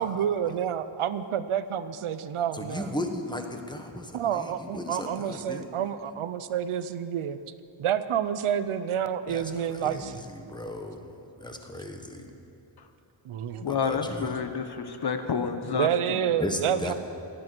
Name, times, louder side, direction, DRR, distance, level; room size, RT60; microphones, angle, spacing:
voice 1, 0.0-2.9 4.1-7.4 7.8-10.2 13.2-13.7 15.7-16.9, right 9 dB, 80° right, 13 dB, 0.8 m, -29 dB
voice 2, 2.5-5.7 9.3-12.3 13.6-14.4 16.4-16.9, left 1 dB, 10° left, 4 dB, 1.2 m, -36 dB
voice 3, 13.6-16.2, left 5 dB, 50° left, 7 dB, 1.1 m, -29 dB
18.0 x 12.0 x 6.1 m, 2.8 s
wide cardioid pair, 155°, 49 cm